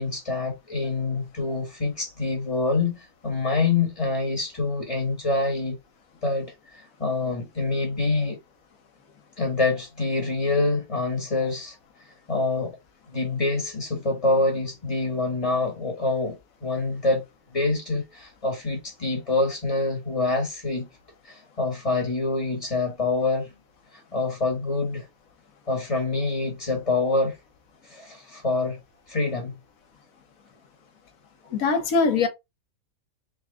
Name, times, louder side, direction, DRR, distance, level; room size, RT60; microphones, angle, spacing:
voice 1, 0.0-5.7 6.2-8.4 9.4-11.8 12.3-12.8 13.1-17.2 17.5-20.9 21.2-23.5 23.9-25.1 25.7-27.4 27.8-28.8 29.1-29.6, left 3 dB, 25° left, 1.2 m, -26 dB
voice 2, 31.5-32.3, left 4 dB, 70° left, 1.4 m, -22 dB
3.7 x 3.1 x 3.7 m
omnidirectional pair, 1.5 m